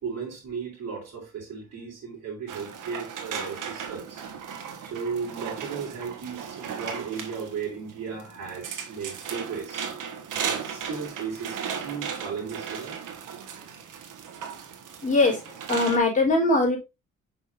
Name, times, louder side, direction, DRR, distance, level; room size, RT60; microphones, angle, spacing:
voice 1, 0.0-4.2 4.8-9.9 10.3-13.0, right 5 dB, 55° right, 4.2 m, -35 dB
sound 1, 2.5-16.0, right 7 dB, 70° right, 1.4 m, -36 dB
voice 2, 15.0-15.4 15.7-16.8, left 2 dB, 25° left, 3.5 m, -21 dB
6.0 x 5.9 x 2.6 m
cardioid pair, 90°, 32 cm